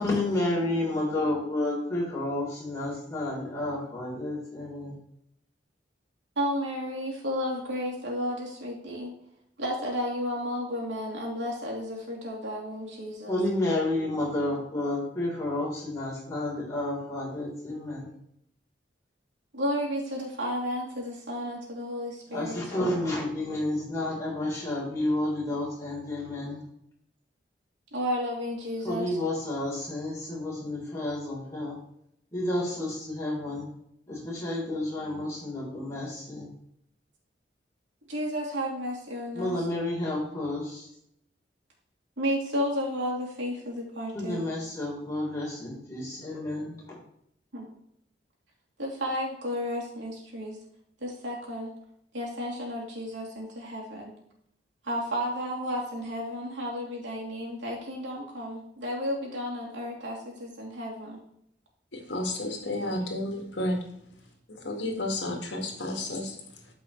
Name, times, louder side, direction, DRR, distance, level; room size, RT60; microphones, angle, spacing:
voice 1, 0.0-5.0 13.3-18.1 22.3-26.6 28.8-31.7 32.3-33.7 34.1-36.5 39.3-40.9 44.1-46.7, left 1 dB, 20° left, -5 dB, 3.8 m, -30 dB
voice 2, 6.4-9.1 9.6-13.4 19.5-22.6 27.9-29.2 38.1-39.7 42.2-44.4 47.5-47.7 48.8-50.6 51.0-51.7 52.1-54.1 54.8-61.2, equal, 90° right, -3 dB, 2.9 m, -32 dB
voice 3, 61.9-63.9 64.5-66.7, left 1 dB, 75° left, 2 dB, 1.9 m, -32 dB
13.0 x 5.4 x 3.2 m, 0.74 s
head